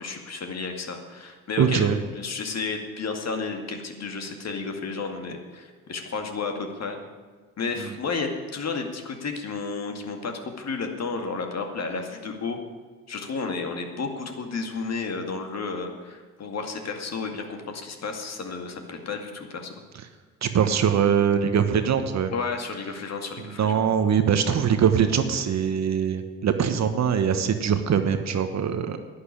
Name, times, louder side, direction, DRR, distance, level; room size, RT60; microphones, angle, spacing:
voice 1, 0.0-7.0 7.6-12.6 13.1-19.7 22.3-23.9, left 4 dB, 40° left, 4 dB, 2.2 m, -32 dB
voice 2, 1.6-2.0 20.4-22.3 23.6-29.0, right 7 dB, 40° right, 9 dB, 1.3 m, -22 dB
11.0 x 10.0 x 8.7 m, 1.4 s
figure-of-eight pair, 55°, 41 cm